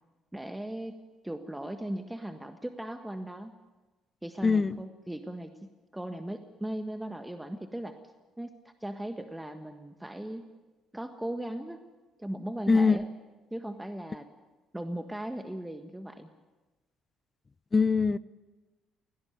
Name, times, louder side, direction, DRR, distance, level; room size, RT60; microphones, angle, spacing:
voice 1, 0.3-1.0 1.2-3.5 4.2-8.0 8.4-8.5 8.8-10.4 10.9-11.8 12.2-13.1 13.5-14.3 14.7-16.3, right 1 dB, 10° right, 7 dB, 1.5 m, -38 dB
voice 2, 4.4-4.8 12.7-13.0 17.7-18.2, left 4 dB, 30° left, 19 dB, 0.6 m, -22 dB
18.0 x 17.0 x 9.3 m, 1.2 s
hypercardioid pair, 55°, 0 cm